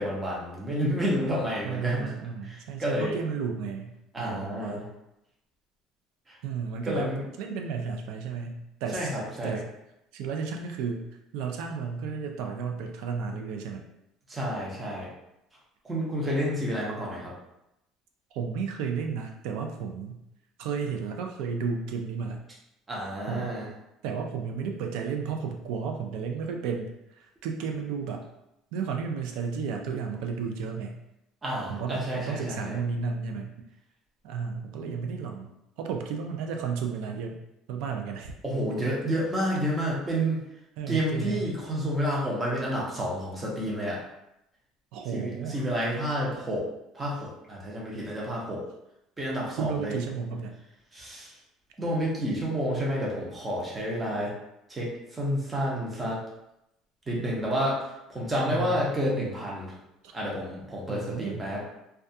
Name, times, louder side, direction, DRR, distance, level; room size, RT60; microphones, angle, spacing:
voice 1, 0.0-2.1 2.5-3.2 4.1-4.9 6.3-6.4 6.8-7.2 8.9-9.6 14.3-15.1 15.8-17.3 22.9-23.6 31.4-32.8 38.4-40.4 40.9-44.0 45.1-46.7 46.9-48.6 49.2-50.0 50.9-51.3 51.8-54.3 54.7-56.2 57.1-57.8 58.1-59.7 60.1-61.6, equal, 15° right, -4 dB, 0.6 m, -30 dB
voice 2, 1.6-4.8 6.4-7.1 7.4-9.2 9.4-9.6 10.1-11.1 11.3-13.9 18.3-20.2 20.6-22.4 23.3-23.5 24.0-28.2 28.7-31.0 31.7-33.5 34.2-37.4 37.7-38.3 40.8-41.5 44.9-45.7 49.6-50.5 58.5-58.8 60.0-60.1 60.9-61.5, right 6 dB, 70° right, 3 dB, 0.3 m, -33 dB
2.3 x 2.2 x 2.6 m, 0.86 s
cardioid pair, 170°, 0 cm